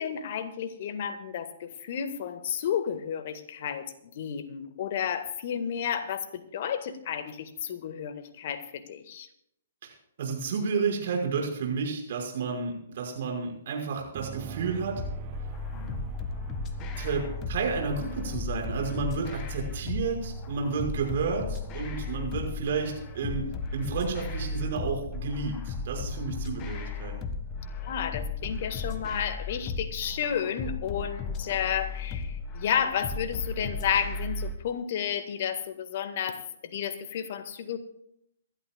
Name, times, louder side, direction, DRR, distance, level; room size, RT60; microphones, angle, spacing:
voice 1, 0.0-9.3 27.8-37.8, left 8 dB, 50° left, 9 dB, 1.7 m, -32 dB
voice 2, 10.2-15.0 15.7-16.0 16.3-16.5 17.0-23.5 23.7-27.1, right 5 dB, 55° right, 1 dB, 5.7 m, -31 dB
sound 1, 14.1-30.2, right 12 dB, 35° right, 0.9 m, -45 dB
sound 2, 15.0-34.6, left 4 dB, 25° left, 1.7 m, -35 dB
26.5 x 12.5 x 2.4 m, 0.74 s
figure-of-eight pair, 125°, 0 cm